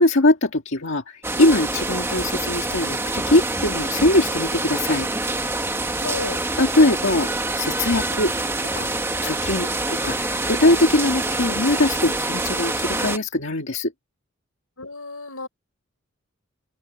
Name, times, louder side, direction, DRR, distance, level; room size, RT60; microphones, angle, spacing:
voice 1, 0.0-5.1 6.6-7.3 7.6-8.3 8.6-8.9 9.2-13.9, left 2 dB, 60° left, 1.9 m, -21 dB
sound 1, 1.2-13.2, right 2 dB, 10° right, 1.3 m, -26 dB
voice 2, 6.0-6.4 14.8-15.5, left 3 dB, 85° left, 6.5 m, -32 dB
open air
head